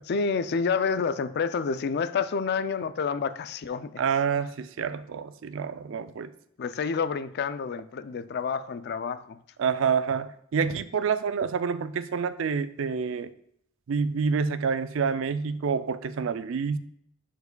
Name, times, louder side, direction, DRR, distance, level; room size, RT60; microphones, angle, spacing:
voice 1, 0.1-4.0 6.6-9.4, left 5 dB, 55° left, 13 dB, 0.4 m, -29 dB
voice 2, 4.0-6.3 9.6-13.3 13.9-16.8, right 6 dB, 70° right, 13 dB, 0.4 m, -28 dB
10.5 x 4.7 x 2.3 m, 0.71 s
head